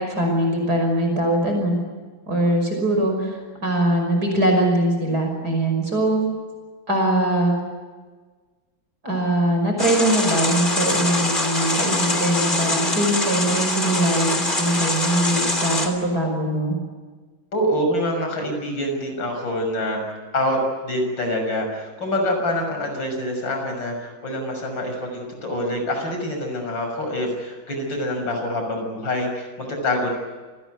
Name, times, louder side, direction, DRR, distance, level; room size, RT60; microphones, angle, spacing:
voice 1, 0.0-1.8 2.3-6.2 6.9-7.6 9.0-16.8, right 1 dB, 50° right, 3 dB, 6.2 m, -22 dB
sound 1, 9.8-15.9, left 2 dB, 25° left, 3.3 m, -23 dB
voice 2, 17.5-20.0 20.3-30.1, left 1 dB, 65° left, 3 dB, 6.9 m, -25 dB
28.5 x 20.0 x 9.4 m, 1.4 s
omnidirectional pair, 2.1 m